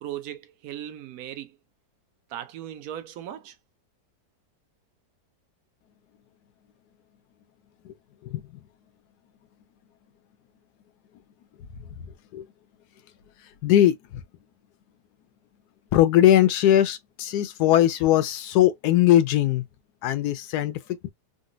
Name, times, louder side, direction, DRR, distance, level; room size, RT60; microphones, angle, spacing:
voice 1, 0.0-1.6 2.3-3.6, right 11 dB, 65° right, 1.0 m, -37 dB
voice 2, 13.6-14.2 15.9-19.6 20.0-21.1, left 12 dB, 75° left, 1.0 m, -20 dB
3.9 x 2.1 x 2.5 m
omnidirectional pair, 2.1 m